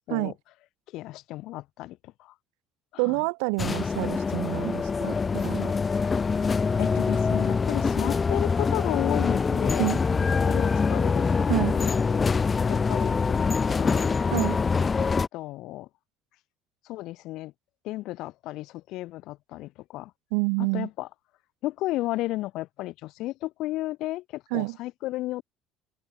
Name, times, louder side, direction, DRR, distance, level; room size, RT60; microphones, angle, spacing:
voice 1, 0.9-2.3 2.9-3.2 6.8-9.9 10.3-12.3 12.7-14.1 15.0-15.9 16.8-17.5 17.8-20.1 20.7-21.1 21.6-25.4, left 17 dB, 70° left, 7.4 m, -33 dB
voice 2, 3.0-5.7 9.8-10.0 11.5-11.8 14.3-14.6 20.3-20.9 24.5-24.8, right 40 dB or more, 90° right, 4.3 m, -28 dB
sound 1, 3.6-15.3, left 5 dB, 25° left, 0.7 m, -24 dB
cardioid pair, 110°, 0 cm